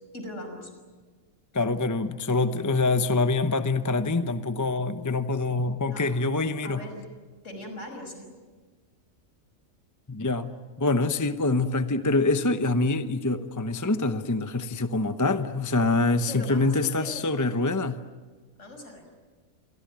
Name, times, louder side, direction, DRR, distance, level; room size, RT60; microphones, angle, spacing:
voice 1, 0.1-0.7 5.9-6.0 6.6-7.0 7.4-8.3 16.3-17.3 18.6-19.1, left 1 dB, 60° left, 5 dB, 6.0 m, -40 dB
voice 2, 1.5-6.8 10.1-18.0, left 3 dB, 15° left, 10 dB, 0.7 m, -25 dB
27.5 x 23.5 x 9.2 m, 1.4 s
omnidirectional pair, 1.4 m